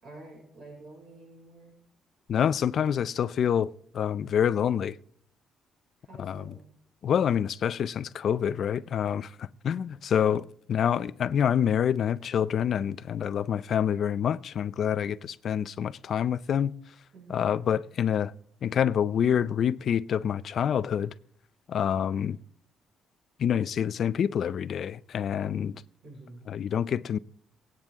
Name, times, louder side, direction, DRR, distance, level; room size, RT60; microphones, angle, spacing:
voice 1, 0.0-1.7 6.0-6.6 17.1-17.4 26.0-26.5, right 2 dB, 55° right, 5.6 m, -49 dB
voice 2, 2.3-5.0 6.2-6.5 7.0-16.7 17.3-18.3 18.6-21.1 21.7-22.4 23.4-25.8 26.5-27.2, left 8 dB, 50° left, 0.5 m, -27 dB
23.5 x 9.1 x 3.6 m
cardioid pair, 135°, 0 cm